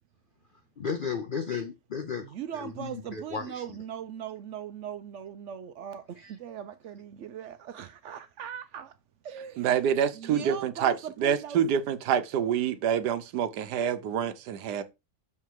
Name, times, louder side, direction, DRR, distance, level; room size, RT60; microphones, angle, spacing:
voice 1, 0.8-3.8 6.2-6.4, left 6 dB, 65° left, 0.5 m, -35 dB
voice 2, 2.2-8.9 9.2-9.7 10.1-11.6, right 9 dB, 70° right, 0.7 m, -39 dB
voice 3, 9.6-14.8, right 8 dB, 85° right, 1.3 m, -27 dB
6.5 x 3.6 x 4.6 m
omnidirectional pair, 1.7 m